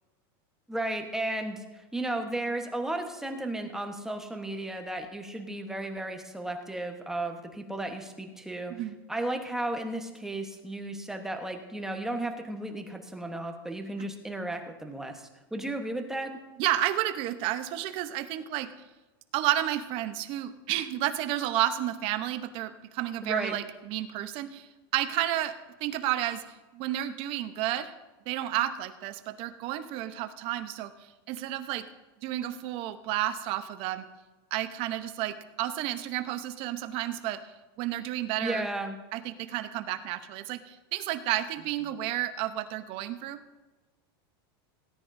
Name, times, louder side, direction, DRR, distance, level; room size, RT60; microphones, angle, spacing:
voice 1, 0.7-8.7 9.1-15.2 15.5-16.3 23.2-23.5 38.4-39.0, right 1 dB, 5° right, 4 dB, 1.2 m, -34 dB
voice 2, 16.6-18.7 19.3-27.9 28.3-30.9 31.3-31.9 32.2-34.0 34.5-37.4 37.8-38.7 39.1-43.4, right 13 dB, 45° right, 10 dB, 0.9 m, -31 dB
17.5 x 9.9 x 2.7 m, 1.2 s
supercardioid pair, 140°, 13 cm